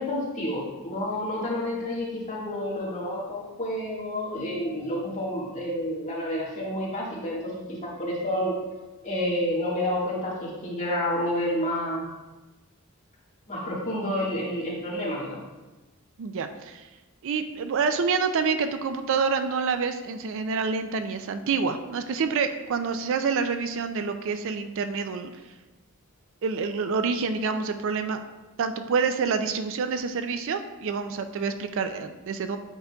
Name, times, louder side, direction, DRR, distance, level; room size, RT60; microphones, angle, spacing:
voice 1, 0.0-8.5 9.0-12.1 13.5-15.4, left 1 dB, 35° left, -5 dB, 1.6 m, -29 dB
voice 2, 16.2-16.8 17.2-25.3 26.4-28.2 28.6-32.6, right 5 dB, 60° right, 9 dB, 0.4 m, -27 dB
8.1 x 5.1 x 2.3 m, 1.1 s
head